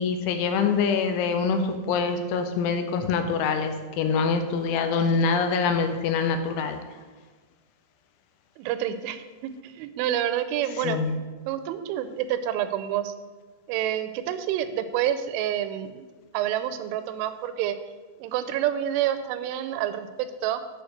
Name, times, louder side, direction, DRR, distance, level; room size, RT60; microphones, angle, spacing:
voice 1, 0.0-6.8 10.8-11.1, left 5 dB, 85° left, 7 dB, 3.2 m, -25 dB
voice 2, 8.6-11.0 11.5-13.1 13.7-16.1 16.3-17.8 18.2-20.1 20.4-20.6, right 11 dB, 85° right, 11 dB, 3.0 m, -28 dB
9.1 x 4.7 x 6.4 m, 1.3 s
omnidirectional pair, 5.5 m